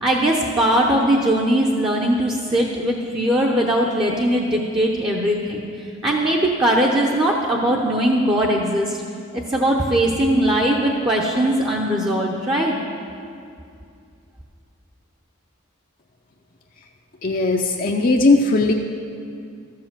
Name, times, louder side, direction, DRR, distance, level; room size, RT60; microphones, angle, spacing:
voice 1, 0.0-9.0 9.3-12.8, right 1 dB, 25° right, -2 dB, 0.8 m, -20 dB
voice 2, 17.2-18.7, left 3 dB, 40° left, 1 dB, 0.6 m, -18 dB
13.0 x 7.6 x 7.4 m, 2.4 s
head